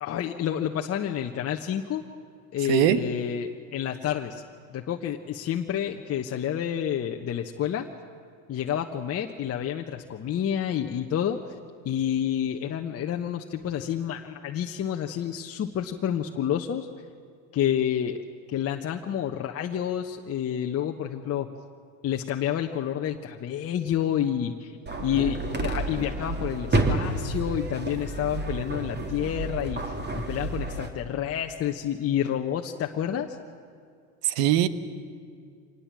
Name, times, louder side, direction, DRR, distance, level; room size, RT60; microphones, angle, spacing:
voice 1, 0.0-2.0 2.5-4.4 4.7-7.8 8.5-11.4 11.8-16.9 17.5-18.2 18.5-21.5 22.0-24.7 25.0-33.4, left 9 dB, 35° left, 3 dB, 1.2 m, -29 dB
voice 2, 2.7-3.0 34.2-34.7, right 13 dB, 60° right, 14 dB, 1.3 m, -21 dB
sound 1, 24.9-30.9, right 2 dB, 25° right, 2.8 m, -30 dB
25.5 x 19.0 x 7.5 m, 2.3 s
hypercardioid pair, 85°, 42 cm